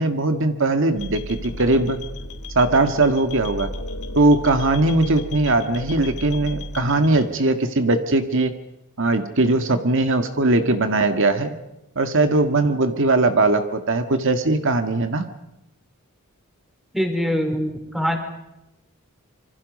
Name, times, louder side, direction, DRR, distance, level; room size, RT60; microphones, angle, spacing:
voice 1, 0.0-2.0 2.6-3.7 4.2-8.5 9.0-11.5 12.0-15.3, right 2 dB, 60° right, 8 dB, 1.7 m, -20 dB
sound 1, 1.0-7.3, left 2 dB, 85° left, 3.5 m, -34 dB
voice 2, 16.9-18.2, equal, ahead, 4 dB, 4.5 m, -23 dB
27.5 x 25.0 x 5.3 m, 0.91 s
head